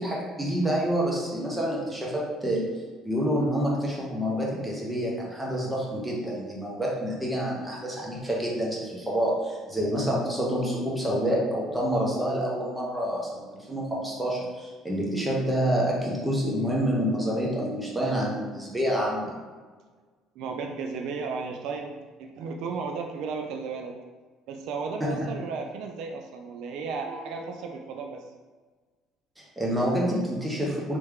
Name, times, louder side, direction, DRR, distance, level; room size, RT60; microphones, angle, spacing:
voice 1, 0.0-2.7 3.0-19.3 25.0-25.3 29.4-31.0, equal, 10° right, -4 dB, 1.2 m, -28 dB
voice 2, 20.4-24.0 24.5-28.2, right 4 dB, 70° right, 3 dB, 0.4 m, -34 dB
3.4 x 3.1 x 3.5 m, 1.4 s
supercardioid pair, 95°, 0 cm